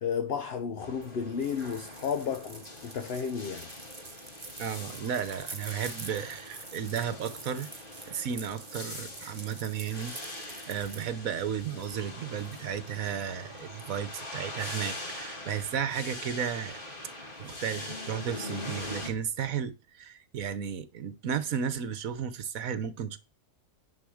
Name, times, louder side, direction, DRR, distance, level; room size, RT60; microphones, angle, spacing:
voice 1, 0.0-3.7, left 6 dB, 50° left, 0.8 m, -33 dB
sound 1, 0.8-19.1, left 2 dB, 30° left, 2.6 m, -43 dB
sound 2, 1.4-11.1, right 3 dB, 25° right, 1.2 m, -47 dB
voice 2, 4.6-7.7 8.1-10.1 10.4-16.8 17.4-23.2, right 8 dB, 60° right, 1.4 m, -34 dB
10.5 x 4.7 x 6.4 m
omnidirectional pair, 1.8 m